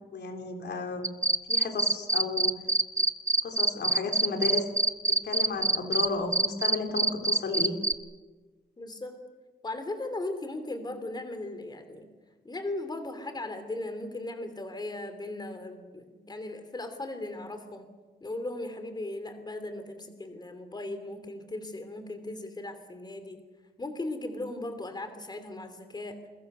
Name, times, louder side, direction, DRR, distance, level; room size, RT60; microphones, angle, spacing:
voice 1, 0.1-1.0 1.5-2.5 3.4-4.6 5.2-7.8, left 4 dB, 75° left, 4 dB, 3.4 m, -33 dB
sound 1, 1.0-6.1 6.3-7.9, right 2 dB, 15° right, 0.8 m, -24 dB
voice 2, 8.8-9.2 9.6-12.1 12.4-17.9 18.2-23.4 23.8-26.2, left 2 dB, 25° left, 9 dB, 2.9 m, -37 dB
28.5 x 22.5 x 6.8 m, 1.3 s
wide cardioid pair, 155°, 18 cm